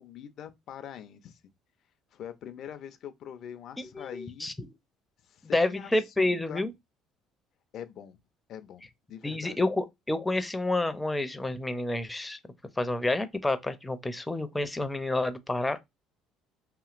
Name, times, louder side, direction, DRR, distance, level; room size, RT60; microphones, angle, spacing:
voice 1, 0.0-1.4 2.1-4.5 5.2-5.9 6.2-6.6 7.7-8.2 8.5-8.8 9.1-9.6, left 9 dB, 60° left, 0.5 m, -43 dB
voice 2, 3.8-4.7 5.5-6.7 9.2-12.4 12.8-15.8, left 2 dB, 10° left, 0.5 m, -29 dB
2.9 x 2.8 x 2.5 m
supercardioid pair, 80°, 0 cm